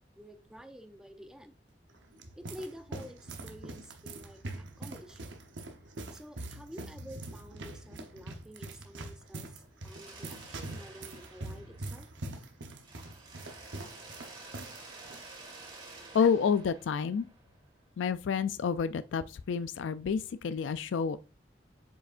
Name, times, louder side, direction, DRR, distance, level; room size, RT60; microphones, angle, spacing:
voice 1, 0.2-1.5 2.4-5.4 6.1-12.1, equal, 5° right, 0.6 m, -50 dB
sound 1, 1.9-14.8 15.0-15.2 15.9-16.2, right 2 dB, 75° right, 0.9 m, -43 dB
Mechanisms, 9.8-12.4 12.8-17.7, right 3 dB, 25° right, 1.8 m, -50 dB
voice 2, 16.1-17.3 18.0-21.2, left 6 dB, 85° left, 0.3 m, -29 dB
7.8 x 4.9 x 2.5 m
head